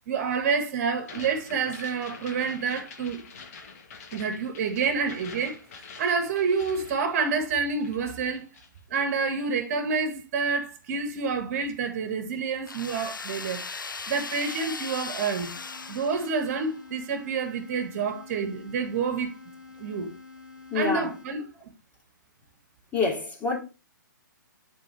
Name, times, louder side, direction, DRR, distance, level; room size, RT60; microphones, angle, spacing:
voice 1, 0.1-3.2 4.1-5.6 6.0-8.5 8.9-13.6 14.1-15.6 15.9-19.3 19.8-20.1 20.7-21.5, right 5 dB, 40° right, 1.8 m, -28 dB
sound 1, 1.0-7.6 7.8-8.8, left 5 dB, 45° left, 1.6 m, -46 dB
sound 2, 12.7-16.8, left 4 dB, 85° left, 0.6 m, -38 dB
sound 3, 15.6-21.6, left 4 dB, 70° left, 2.3 m, -48 dB
voice 2, 20.7-21.1 22.9-23.6, left 4 dB, 15° left, 2.7 m, -26 dB
10.5 x 4.3 x 3.4 m
figure-of-eight pair, 130°, 11 cm